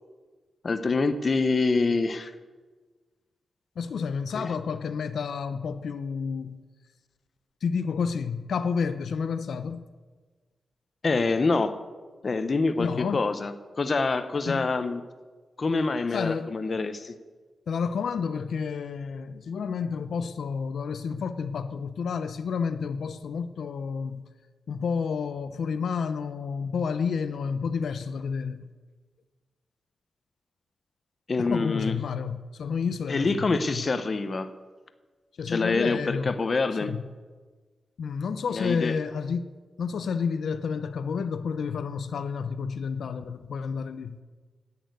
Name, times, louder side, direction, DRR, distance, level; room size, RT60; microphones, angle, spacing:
voice 1, 0.6-2.3 4.3-4.5 11.0-11.8 12.2-15.0 15.6-17.1 31.3-31.9 33.1-34.5 35.5-36.9 38.5-38.9, left 3 dB, 35° left, 0.7 m, -26 dB
voice 2, 3.8-6.6 7.6-9.8 12.8-13.2 14.5-14.7 16.1-16.5 17.7-24.3 24.7-28.7 31.4-33.9 35.4-36.4 36.8-37.0 38.0-39.5 39.8-44.2, left 6 dB, 70° left, 0.6 m, -30 dB
10.5 x 8.6 x 9.3 m
wide cardioid pair, 180°, 0 cm